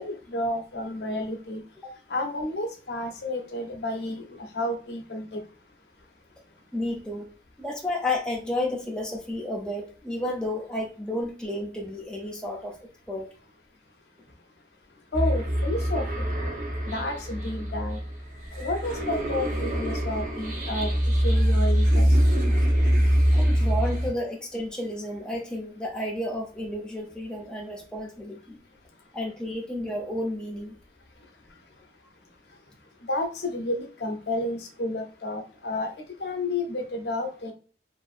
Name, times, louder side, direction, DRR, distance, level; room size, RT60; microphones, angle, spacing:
voice 1, 0.0-1.6 2.1-5.4 15.1-16.3 16.8-18.0 18.6-20.9 21.2-22.1 33.1-35.9 36.2-37.5, left 1 dB, 65° left, 4 dB, 0.6 m, -31 dB
voice 2, 6.7-7.3 7.6-12.8 13.1-13.3 23.3-28.6 29.1-30.7, left 1 dB, 5° left, -1 dB, 0.3 m, -32 dB
sound 1, 15.1-24.1, equal, 45° right, 0.7 m, -24 dB
2.5 x 2.4 x 2.4 m, 0.39 s
head